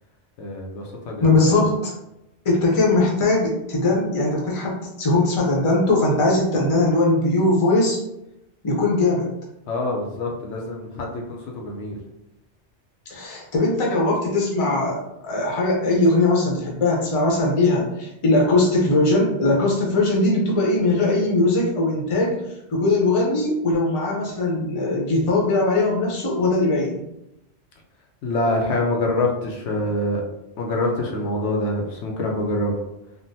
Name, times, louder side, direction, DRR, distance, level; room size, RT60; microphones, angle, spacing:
voice 1, 0.4-1.6 9.7-12.0 28.2-30.2 30.6-32.8, left 1 dB, 75° left, 0 dB, 0.9 m, -25 dB
voice 2, 1.2-1.9 2.4-8.0 8.6-9.3 13.1-22.3 22.7-27.0, left 2 dB, 35° left, -3 dB, 0.7 m, -20 dB
3.7 x 2.1 x 2.6 m, 0.87 s
omnidirectional pair, 1.2 m